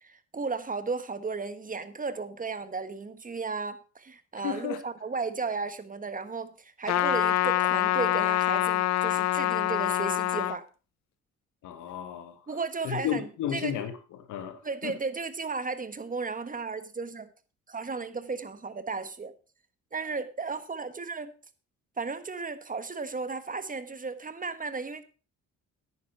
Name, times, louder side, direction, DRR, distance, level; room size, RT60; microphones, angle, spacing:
voice 1, 0.0-10.7 12.5-13.2 13.5-13.7 14.6-17.3 17.7-19.3 19.9-21.3 22.0-25.0, right 4 dB, 25° right, 1.4 m, -34 dB
voice 2, 4.4-4.8 11.6-12.5 12.8-15.0, left 10 dB, 90° left, 1.9 m, -33 dB
Trumpet, 6.9-10.6, left 14 dB, 60° left, 0.7 m, -25 dB
10.5 x 9.3 x 4.6 m
cardioid pair, 90°, 30 cm